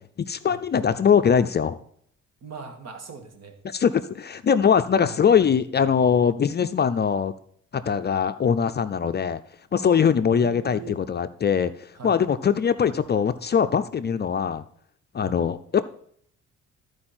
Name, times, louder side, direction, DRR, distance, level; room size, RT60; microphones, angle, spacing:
voice 1, 0.2-1.8 3.6-7.3 7.7-9.4 9.7-14.6 15.1-15.8, left 7 dB, 35° left, 10 dB, 0.5 m, -22 dB
voice 2, 2.4-3.6 5.0-5.2 7.9-8.0 10.3-11.0 11.9-12.2 15.2-15.4, right 5 dB, 60° right, 4 dB, 2.1 m, -40 dB
13.5 x 4.8 x 4.3 m, 0.64 s
cardioid pair, 90°, 30 cm